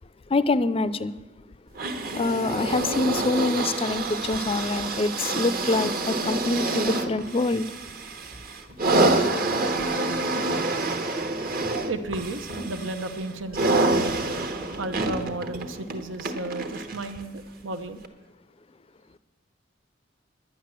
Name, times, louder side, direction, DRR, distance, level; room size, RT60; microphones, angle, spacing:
voice 1, 0.3-1.1 2.1-7.7, left 3 dB, 30° left, 0.4 m, -25 dB
sound 1, 1.7-17.2 18.0-18.1, right 2 dB, 50° right, 1.1 m, -27 dB
voice 2, 11.8-14.3 14.8-18.0, right 2 dB, 90° right, 0.9 m, -33 dB
10.5 x 10.0 x 7.4 m
head